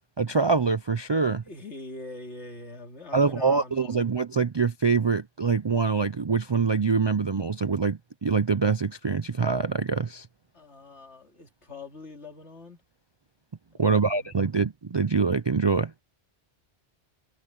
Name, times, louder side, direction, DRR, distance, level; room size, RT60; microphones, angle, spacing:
voice 1, 0.2-1.4 3.1-10.3 13.8-15.9, right 5 dB, 40° right, 0.3 m, -24 dB
voice 2, 1.2-4.2 10.5-12.8 13.7-14.4, left 2 dB, 75° left, 3.3 m, -44 dB
omnidirectional pair, 1.2 m